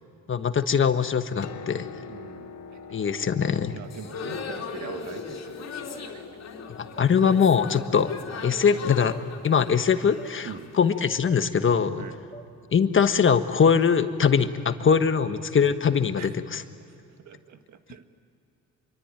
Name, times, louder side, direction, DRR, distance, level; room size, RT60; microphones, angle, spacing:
voice 1, 0.3-1.9 2.9-3.8 6.7-8.1 8.4-9.1 9.4-10.5 10.8-12.0 12.7-16.6, left 6 dB, 40° left, 9 dB, 1.4 m, -22 dB
Piano, 1.2-14.9 16.0-16.1, left 6 dB, 75° left, 2.8 m, -48 dB
voice 2, 2.1-3.0 3.7-6.2 10.4-10.7 12.0-12.2 14.4-14.5 16.2-16.4 16.9-18.0, right 9 dB, 70° right, 8 dB, 1.6 m, -43 dB
sound 1, 3.9-10.8, left 5 dB, 60° left, 3.3 m, -38 dB
sound 2, 4.8-5.0 5.9-6.0 7.0-7.1 8.0-8.2 9.1-9.3 10.2-10.3 11.2-11.4 12.3-12.5, right 1 dB, 15° left, 1.4 m, -44 dB
25.5 x 23.5 x 9.0 m, 2.8 s
cardioid pair, 90°, 30 cm